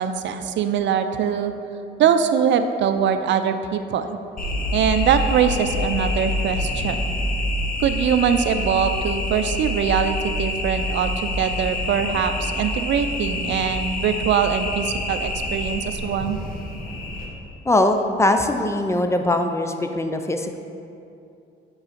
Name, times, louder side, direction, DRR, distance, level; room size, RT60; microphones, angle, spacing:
voice 1, 0.0-1.5 2.0-4.2 4.7-7.1 7.8-16.4, right 8 dB, 70° right, 9 dB, 0.5 m, -22 dB
sound 1, 4.4-17.3, left 1 dB, 45° left, 1.3 m, -27 dB
voice 2, 17.7-20.6, left 1 dB, 15° left, 6 dB, 0.5 m, -21 dB
7.2 x 3.8 x 5.1 m, 2.6 s
cardioid pair, 90°, 20 cm